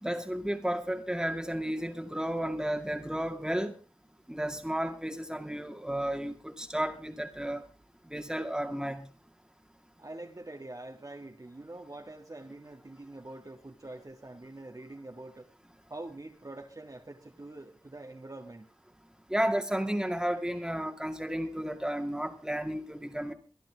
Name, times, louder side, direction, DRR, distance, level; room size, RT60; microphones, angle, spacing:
voice 1, 0.0-3.7 4.3-7.6 8.1-9.1 19.3-23.3, right 1 dB, 5° right, 2.1 m, -32 dB
voice 2, 10.0-15.4 15.9-18.7, right 2 dB, 40° right, 1.7 m, -45 dB
23.5 x 11.5 x 3.5 m
wide cardioid pair, 60°, 10 cm